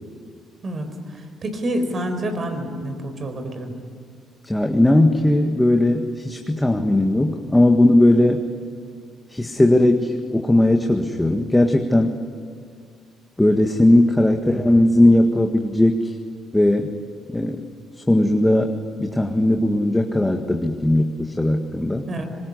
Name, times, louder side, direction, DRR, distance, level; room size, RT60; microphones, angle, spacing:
voice 1, 0.6-3.8 22.1-22.2, right 1 dB, 45° right, 6 dB, 4.9 m, -28 dB
voice 2, 4.4-8.5 9.3-12.1 13.4-16.1 16.5-16.9 17.3-17.7 18.1-18.7 19.0-22.1, left 1 dB, 10° left, 4 dB, 1.8 m, -18 dB
24.0 x 21.0 x 9.8 m, 2.1 s
supercardioid pair, 60°, 0 cm